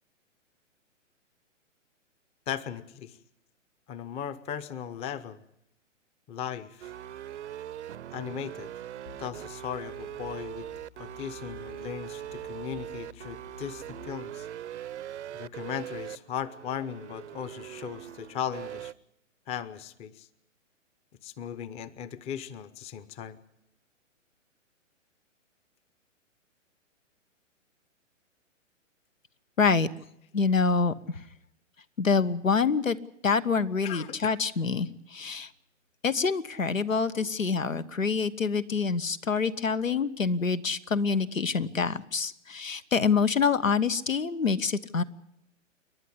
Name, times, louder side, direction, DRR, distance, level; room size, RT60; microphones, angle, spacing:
voice 1, 2.5-3.2 3.9-5.4 6.3-6.9 8.1-8.7 9.2-10.6 11.0-14.5 15.3-18.9 19.5-20.3 21.2-23.4 33.8-34.4, left 9 dB, 15° left, 15 dB, 0.7 m, -37 dB
sound 1, 6.8-18.9, right 11 dB, 60° right, 0.8 m, -41 dB
sound 2, 9.1-14.1, left 6 dB, 60° left, 4.4 m, -52 dB
voice 2, 29.6-29.9 30.3-31.2 32.0-33.0 33.2-35.5 36.0-45.0, left 5 dB, 85° left, 13 dB, 1.3 m, -26 dB
29.0 x 11.5 x 9.7 m, 0.78 s
figure-of-eight pair, 125°, 38 cm